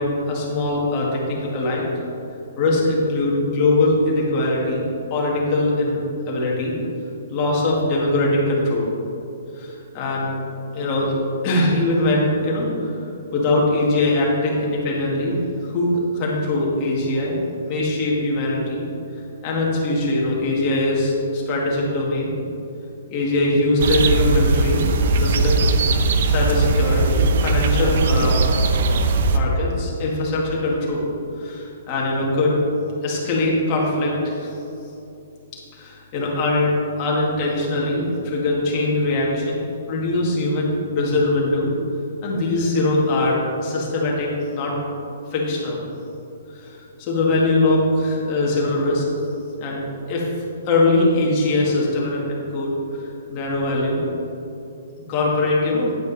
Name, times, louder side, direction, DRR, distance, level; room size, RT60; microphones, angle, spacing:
voice 1, 0.0-1.8 2.6-4.8 5.1-6.7 7.3-8.9 9.6-10.3 10.7-13.0 13.3-17.4 17.6-18.9 19.4-22.3 23.1-24.8 25.2-25.6 26.2-28.4 29.3-31.0 31.3-32.6 33.0-34.5 35.7-41.7 42.2-44.8 45.3-45.8 46.5-49.0 49.6-49.8 50.1-52.7 53.0-54.0 55.1-55.9, left 2 dB, 20° left, -4 dB, 1.8 m, -22 dB
sound 1, 23.8-29.4, right 3 dB, 45° right, 0.6 m, -19 dB
9.3 x 8.7 x 4.1 m, 2.8 s
hypercardioid pair, 175°, 0 cm